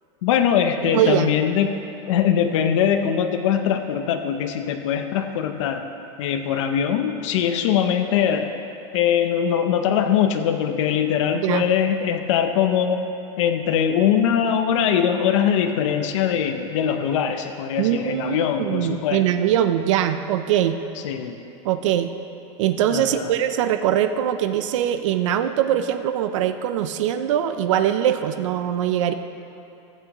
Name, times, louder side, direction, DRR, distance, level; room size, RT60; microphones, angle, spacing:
voice 1, 0.2-1.7 2.1-5.8 6.2-8.5 8.9-13.0 13.4-19.2 21.0-21.4 22.9-23.3, left 8 dB, 80° left, 6 dB, 0.6 m, -22 dB
voice 2, 0.8-1.3 11.3-11.7 17.8-20.8 21.6-22.1 22.6-29.1, right 10 dB, 85° right, 9 dB, 0.5 m, -22 dB
15.0 x 8.1 x 2.9 m, 2.9 s
supercardioid pair, 165°, 16 cm